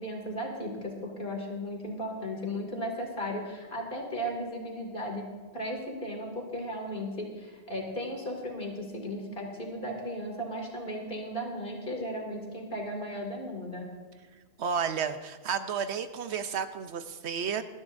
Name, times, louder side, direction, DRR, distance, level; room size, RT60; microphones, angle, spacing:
voice 1, 0.0-13.9, equal, 50° left, 0 dB, 2.6 m, -36 dB
voice 2, 14.6-17.6, right 7 dB, 75° right, 10 dB, 1.0 m, -32 dB
20.5 x 13.0 x 2.6 m, 1.4 s
omnidirectional pair, 1.1 m